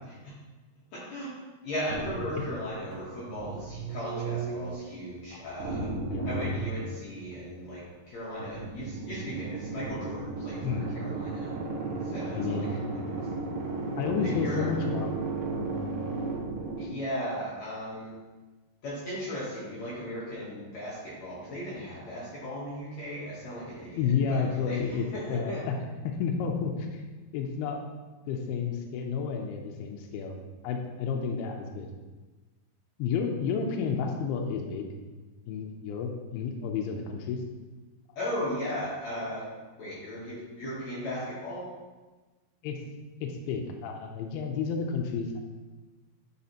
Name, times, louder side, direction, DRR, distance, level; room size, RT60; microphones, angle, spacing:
voice 1, 0.9-1.4 1.6-5.9 6.3-11.5 12.0-13.3 14.2-14.7 16.8-18.2 18.8-25.6 38.2-39.5 39.8-41.7, equal, 65° left, -8 dB, 1.8 m, -37 dB
sound 1, 1.9-4.9 5.6-7.4 8.4-16.9, right 3 dB, 75° right, 2.0 m, -34 dB
voice 2, 12.2-13.1 14.0-15.9 16.8-16.9 24.0-25.8 26.2-27.0 27.3-27.8 28.3-30.4 30.6-31.9 33.0-34.9 35.5-37.4 42.6-42.8 43.2-45.4, left 6 dB, 80° left, 2 dB, 2.5 m, -31 dB
9.3 x 4.2 x 2.8 m, 1.3 s
omnidirectional pair, 4.6 m